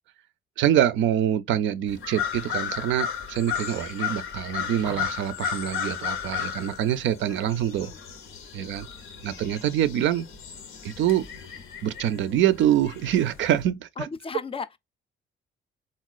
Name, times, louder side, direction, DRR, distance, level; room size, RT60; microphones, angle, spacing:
voice 1, 0.6-7.9 8.5-8.9 9.2-10.3 10.8-11.2 11.8-13.9, right 11 dB, 75° right, 0.4 m, -25 dB
sound 1, 1.9-13.6, left 9 dB, 90° left, 0.7 m, -34 dB
sound 2, 4.8-5.4 7.2-7.5 7.9-8.2, right 1 dB, 15° right, 0.6 m, -44 dB
voice 2, 14.0-14.8, left 5 dB, 30° left, 0.4 m, -35 dB
3.8 x 2.3 x 2.3 m
cardioid pair, 90°, 20 cm